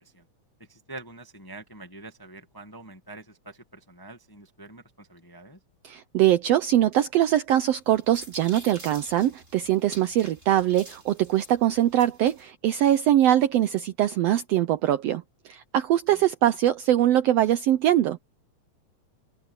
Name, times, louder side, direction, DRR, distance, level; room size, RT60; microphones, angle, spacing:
voice 1, 0.7-5.6 16.1-16.2, right 2 dB, 10° left, 1.1 m, -45 dB
voice 2, 5.8-18.2, right 12 dB, 75° right, 1.5 m, -22 dB
sound 1, 7.7-12.5, right 2 dB, 20° right, 7.2 m, -47 dB
omnidirectional pair, 3.5 m